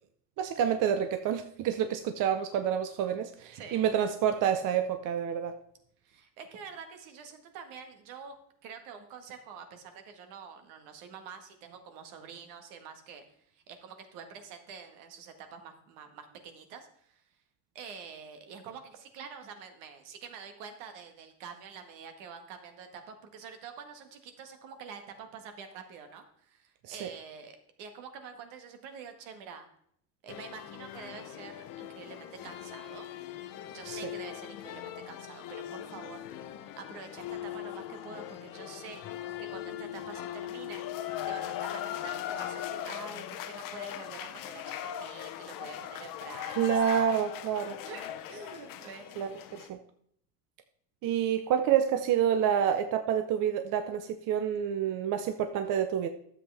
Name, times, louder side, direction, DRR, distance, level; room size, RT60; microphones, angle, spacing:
voice 1, 0.4-5.6 26.9-27.1 33.9-34.0 46.5-47.8 49.2-49.8 51.0-56.1, right 9 dB, 45° right, 8 dB, 0.7 m, -28 dB
voice 2, 3.5-3.9 6.0-8.3 8.6-13.2 13.5-17.2 17.7-29.7 30.2-33.1 33.7-39.0 39.4-40.8 41.3-46.8 47.8-49.1, right 6 dB, 70° right, 6 dB, 1.8 m, -47 dB
sound 1, 30.3-49.7, left 11 dB, 45° left, 0.8 m, -40 dB
11.5 x 7.6 x 3.4 m, 0.68 s
cardioid pair, 140°, 47 cm